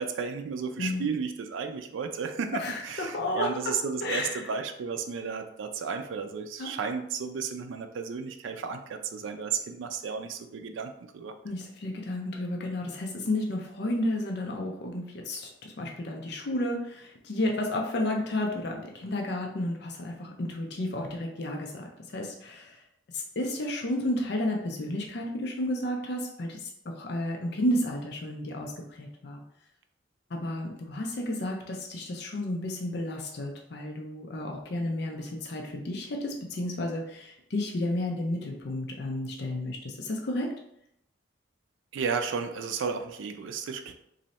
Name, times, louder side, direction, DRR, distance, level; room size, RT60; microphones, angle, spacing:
voice 1, 0.0-11.3 41.9-43.9, right 6 dB, 80° right, 6 dB, 0.4 m, -33 dB
voice 2, 0.8-1.1 2.6-3.7 4.0-4.5 6.6-6.7 11.4-22.8 23.1-29.4 30.3-40.5, left 1 dB, 60° left, 1 dB, 0.5 m, -32 dB
3.1 x 2.6 x 4.1 m, 0.75 s
head